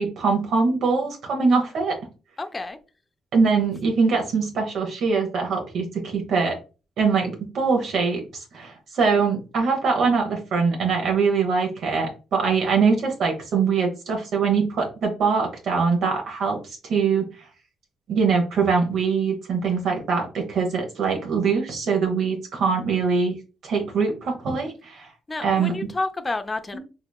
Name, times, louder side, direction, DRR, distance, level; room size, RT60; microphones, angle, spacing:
voice 1, 0.0-1.9 3.3-6.5 7.0-17.5 18.1-23.3 23.6-25.1 25.4-25.7 26.7-26.8, right 5 dB, 70° right, 0.8 m, -23 dB
voice 2, 2.4-2.8 25.3-26.8, left 3 dB, 25° left, 0.4 m, -29 dB
3.3 x 2.9 x 2.3 m
cardioid pair, 95°, 0 cm